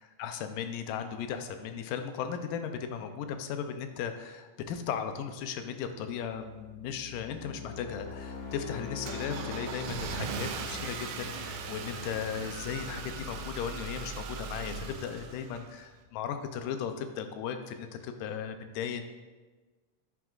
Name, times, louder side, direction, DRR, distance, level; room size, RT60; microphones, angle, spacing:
voice 1, 0.0-19.0, left 7 dB, 80° left, 7 dB, 2.2 m, -36 dB
sound 1, 6.2-15.0, left 5 dB, 55° left, 2.1 m, -45 dB
Car / Engine starting, 7.8-16.0, right 5 dB, 80° right, 1.9 m, -39 dB
9.6 x 9.3 x 2.4 m, 1.3 s
omnidirectional pair, 3.8 m